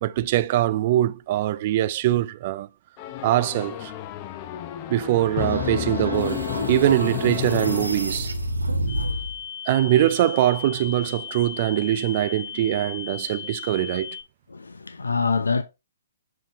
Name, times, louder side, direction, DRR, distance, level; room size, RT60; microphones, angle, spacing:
voice 1, 0.0-2.7 3.2-3.9 4.9-8.3 9.7-14.2, right 13 dB, 40° right, 0.4 m, -22 dB
sound 1, 3.0-8.5, left 12 dB, 35° left, 0.7 m, -31 dB
sound 2, 5.4-9.4, right 1 dB, 85° right, 0.9 m, -30 dB
sound 3, 8.9-14.2, left 7 dB, 55° left, 2.0 m, -37 dB
voice 2, 14.5-15.6, left 5 dB, 80° left, 0.6 m, -25 dB
7.6 x 4.4 x 3.0 m
figure-of-eight pair, 125°, 0 cm